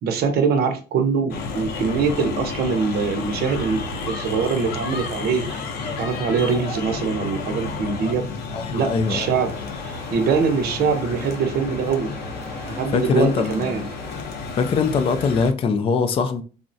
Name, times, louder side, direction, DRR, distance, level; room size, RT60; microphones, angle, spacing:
voice 1, 0.0-5.6 6.0-8.3 8.7-9.5 9.8-12.1 12.7-13.9, right 5 dB, 70° right, 0.7 m, -23 dB
sound 1, 1.3-15.5, left 3 dB, 70° left, 0.7 m, -31 dB
voice 2, 8.5-9.3 12.6-13.9 14.6-16.4, left 5 dB, 35° left, 0.3 m, -22 dB
sound 2, 9.0-14.2, equal, 15° right, 0.9 m, -41 dB
3.6 x 2.1 x 2.6 m
cardioid pair, 110°, 17 cm